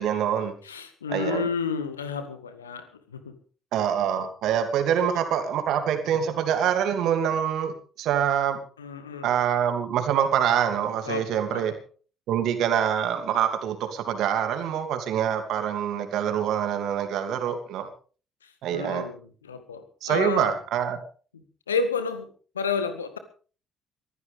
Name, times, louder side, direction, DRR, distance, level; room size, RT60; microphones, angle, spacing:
voice 1, 0.0-0.5 1.1-1.5 3.7-8.6 9.2-11.7 12.3-17.9 18.6-19.0 20.0-21.0, right 9 dB, 60° right, 7 dB, 2.8 m, -25 dB
voice 2, 0.6-3.3 8.8-9.3 11.0-11.7 18.4-20.6 21.7-22.3 22.6-23.2, left 5 dB, 80° left, 10 dB, 1.8 m, -31 dB
22.5 x 15.5 x 3.6 m, 0.40 s
figure-of-eight pair, 50°, 0 cm